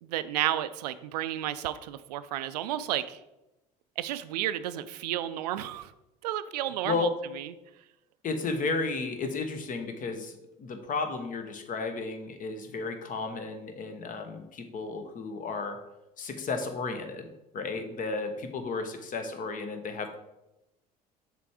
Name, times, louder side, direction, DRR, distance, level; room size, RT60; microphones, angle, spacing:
voice 1, 0.0-3.2 4.0-5.9 6.2-7.1 7.3-7.5, right 13 dB, 75° right, 13 dB, 0.4 m, -32 dB
voice 2, 8.2-10.3 10.6-15.8 16.2-17.3 17.5-20.2, left 4 dB, 40° left, 7 dB, 1.0 m, -33 dB
6.5 x 3.4 x 4.8 m, 0.94 s
hypercardioid pair, 65°, 21 cm